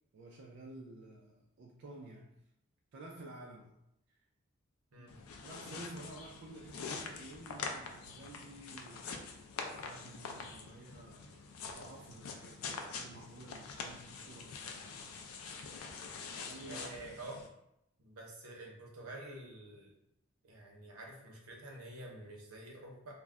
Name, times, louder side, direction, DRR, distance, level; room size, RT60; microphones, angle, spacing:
voice 1, 0.1-2.4 2.9-3.8 4.1-4.2 5.0-5.1 5.4-9.5 9.8-15.0 16.4-16.9, right 2 dB, 55° right, -1 dB, 0.3 m, -52 dB
Tying Shoe Laces Edited, 5.1-17.5, left 4 dB, 80° left, 0.4 m, -45 dB
voice 2, 16.7-17.4 18.0-19.9 20.4-23.1, right 1 dB, 85° right, -1 dB, 0.7 m, -48 dB
2.2 x 2.0 x 3.5 m, 0.80 s
head